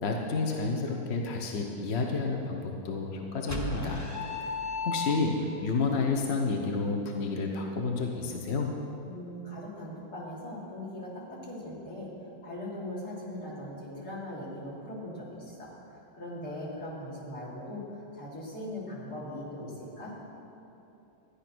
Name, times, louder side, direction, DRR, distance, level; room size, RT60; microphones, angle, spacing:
voice 1, 0.0-4.1 4.4-4.6 4.8-8.7, left 4 dB, 45° left, 2 dB, 1.0 m, -30 dB
sound 1, 3.5-5.6, left 2 dB, 10° left, 1.0 m, -34 dB
voice 2, 9.0-12.1 12.4-20.1, left 1 dB, 60° left, -6 dB, 3.5 m, -40 dB
13.0 x 10.0 x 6.1 m, 3.0 s
omnidirectional pair, 2.0 m